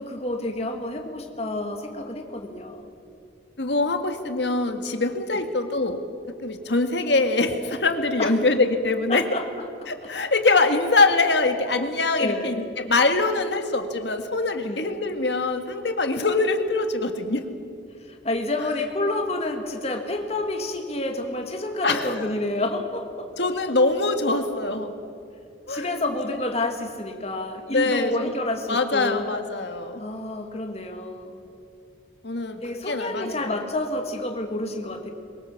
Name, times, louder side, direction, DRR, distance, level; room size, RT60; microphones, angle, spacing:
voice 1, 0.0-2.9 5.3-5.4 8.2-8.3 9.1-9.5 9.8-9.9 12.2-12.6 14.6-15.0 18.0-23.3 25.7-29.3 30.0-31.4 32.6-35.1, left 2 dB, 35° left, 4 dB, 2.0 m, -29 dB
voice 2, 3.6-6.0 6.4-9.2 9.9-17.4 21.8-22.3 23.4-24.9 25.7-25.9 27.7-28.3 28.7-30.0 32.2-32.6 32.9-33.4, left 3 dB, 75° left, 7 dB, 1.8 m, -23 dB
22.5 x 21.5 x 7.2 m, 2.5 s
head